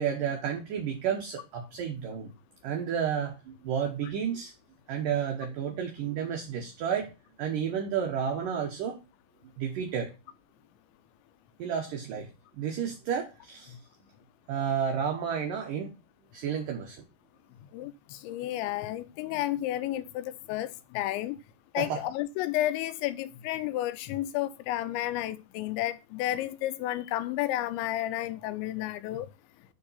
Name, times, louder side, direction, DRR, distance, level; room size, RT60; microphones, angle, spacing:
voice 1, 0.0-2.3 2.6-3.3 3.6-4.5 4.9-7.1 7.4-9.0 9.6-10.1 11.6-13.8 14.5-15.9 16.3-17.0 21.8-22.0, right 8 dB, 70° right, 2.1 m, -31 dB
voice 2, 17.7-21.4 21.7-29.3, left 14 dB, 85° left, 3.0 m, -32 dB
9.5 x 3.6 x 5.6 m
omnidirectional pair, 5.3 m